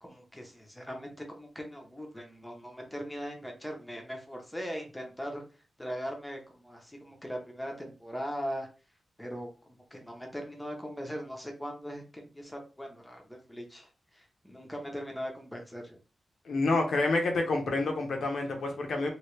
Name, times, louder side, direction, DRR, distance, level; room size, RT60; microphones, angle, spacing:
voice 1, 0.0-5.4 5.8-8.7 9.2-16.0, equal, 5° left, 1 dB, 0.7 m, -40 dB
voice 2, 16.4-19.1, left 2 dB, 75° left, 3 dB, 0.9 m, -28 dB
3.0 x 2.8 x 3.1 m, 0.33 s
wide cardioid pair, 165°, 0 cm